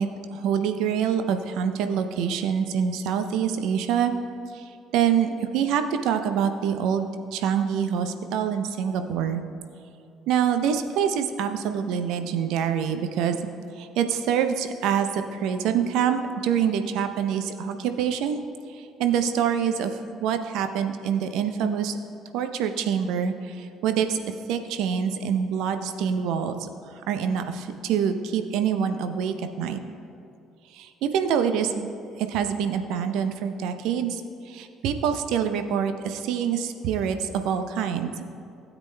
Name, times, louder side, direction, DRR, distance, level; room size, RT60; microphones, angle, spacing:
voice 1, 0.0-4.1 4.5-4.6 4.9-9.4 10.3-13.4 13.8-18.4 19.0-19.9 20.2-22.0 22.3-24.2 24.5-26.7 27.1-29.8 30.7-31.9 32.2-34.2 34.5-38.1, right 8 dB, 65° right, 8 dB, 0.6 m, -25 dB
16.0 x 8.1 x 2.2 m, 2.6 s
figure-of-eight pair, 50°, 0 cm